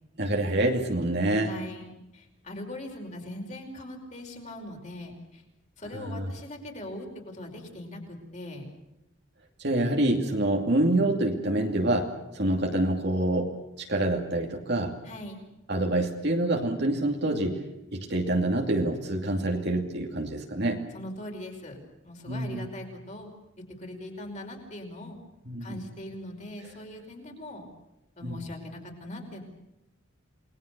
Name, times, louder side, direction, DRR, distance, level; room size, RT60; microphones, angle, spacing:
voice 1, 0.2-1.5 5.9-6.3 9.6-15.0 15.7-17.6 17.9-20.8 22.3-22.7 25.5-25.8 28.2-28.4, right 1 dB, 55° right, 2 dB, 2.5 m, -26 dB
voice 2, 1.4-5.4 5.8-8.6 15.0-15.4 20.9-21.8 22.0-23.3 23.8-25.2 25.6-27.6 28.2-29.4, left 1 dB, 35° left, 2 dB, 5.3 m, -40 dB
29.0 x 20.5 x 6.8 m, 0.93 s
head